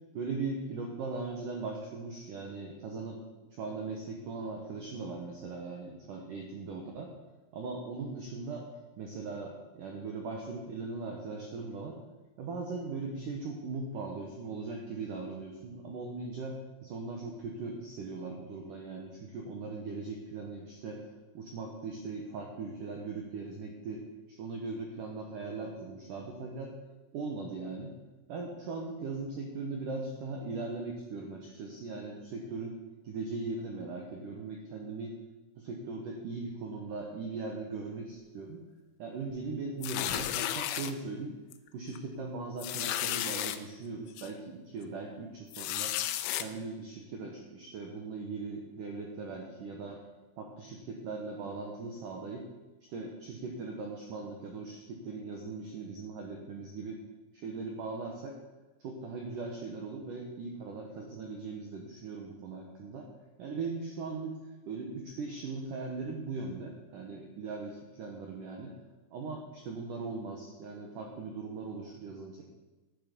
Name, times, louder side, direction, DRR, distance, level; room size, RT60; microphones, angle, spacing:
voice 1, 0.1-3.2 3.5-7.1 7.5-8.7 9.0-12.0 12.4-21.0 21.3-24.0 24.3-26.7 27.1-27.9 28.3-32.8 33.0-35.1 35.5-38.6 39.0-41.4 41.7-46.0 46.4-50.0 50.4-52.4 52.9-57.0 57.3-58.4 58.8-63.1 63.4-68.7 69.1-72.4, right 3 dB, 85° right, 1 dB, 1.8 m, -39 dB
sound 1, 39.8-40.9 41.5-41.7 42.0-42.1 42.6-43.6 44.2-44.3 45.5-46.4, left 12 dB, 85° left, 2.8 m, -33 dB
11.0 x 11.0 x 5.2 m, 1.2 s
omnidirectional pair, 5.6 m